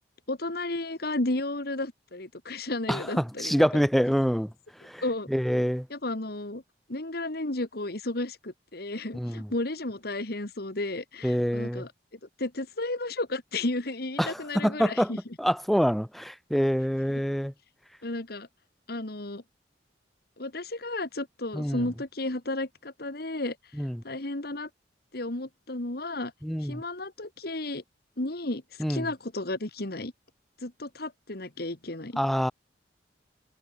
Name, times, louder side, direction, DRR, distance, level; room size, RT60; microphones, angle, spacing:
voice 1, 0.3-3.8 5.0-5.3 5.9-6.6 6.9-11.9 12.4-15.2 18.0-18.5 18.9-19.4 20.4-23.6 24.0-24.7 25.1-26.3 26.6-27.8 28.2-28.6 28.9-30.1 30.6-32.2, left 2 dB, 60° left, 2.0 m, -33 dB
voice 2, 2.9-4.5 4.8-5.0 5.3-5.9 9.1-9.5 11.2-11.9 14.2-15.1 15.4-17.5 21.5-21.9 23.7-24.0 26.4-26.8 28.8-29.1 32.2-32.5, equal, ahead, 1.5 m, -26 dB
head